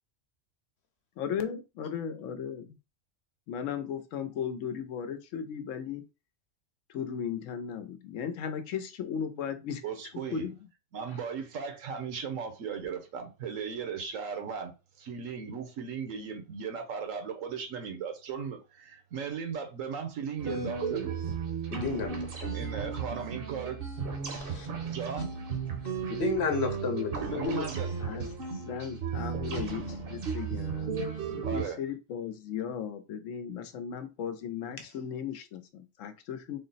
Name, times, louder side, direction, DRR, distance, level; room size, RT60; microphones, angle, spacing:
voice 1, 1.2-2.8 3.5-6.0 6.9-9.8 10.3-10.5 28.0-28.3 28.6-31.0 31.3-36.6, left 7 dB, 80° left, 1.0 m, -36 dB
voice 2, 9.8-10.5 10.9-21.2 22.5-23.8 24.9-25.3 27.2-27.9 31.4-31.8, right 6 dB, 85° right, 1.2 m, -37 dB
sound 1, 20.4-31.6, right 6 dB, 55° right, 0.8 m, -34 dB
voice 3, 21.7-22.5 24.4-24.7 26.1-27.7, left 6 dB, 60° left, 1.0 m, -32 dB
3.7 x 2.0 x 3.9 m
omnidirectional pair, 1.3 m